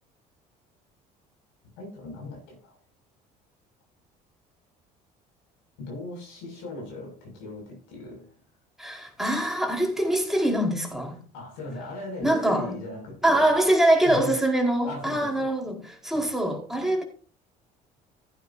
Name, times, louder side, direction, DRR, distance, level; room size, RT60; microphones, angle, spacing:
voice 1, 1.8-2.8 5.8-8.4 11.3-13.6 14.0-14.4 14.8-15.5 16.1-16.3, left 2 dB, 80° left, 6.8 m, -38 dB
voice 2, 8.8-11.2 12.2-12.7 13.2-17.0, right 1 dB, ahead, 4.7 m, -24 dB
15.5 x 9.2 x 2.8 m
supercardioid pair, 75°, 18 cm